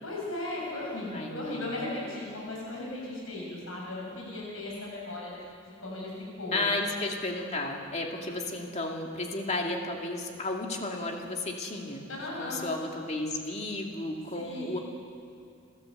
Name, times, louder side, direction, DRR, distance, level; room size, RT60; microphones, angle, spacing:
voice 1, 0.0-5.3 5.8-6.1 6.4-6.6 12.1-12.6 14.3-14.8, left 2 dB, 85° left, -4 dB, 7.6 m, -37 dB
voice 2, 1.1-1.7 6.5-12.1 12.4-14.8, left 2 dB, 35° left, 1 dB, 2.5 m, -33 dB
29.5 x 13.5 x 8.0 m, 2.3 s
head